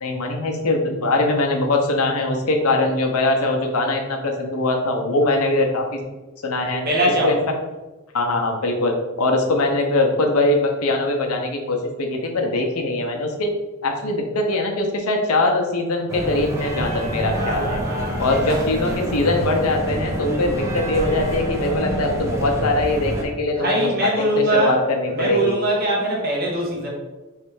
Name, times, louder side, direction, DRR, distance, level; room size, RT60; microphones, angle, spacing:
voice 1, 0.0-6.0 6.4-6.8 7.2-7.4 8.1-13.5 13.8-17.8 18.2-25.6, left 2 dB, 85° left, 2 dB, 0.8 m, -22 dB
voice 2, 6.7-7.3 17.3-19.0 23.5-24.8 25.1-26.9, right 1 dB, 45° right, -2 dB, 1.2 m, -23 dB
sound 1, 16.1-23.2, right 1 dB, 15° right, 0.6 m, -27 dB
3.2 x 3.2 x 4.7 m, 1.2 s
head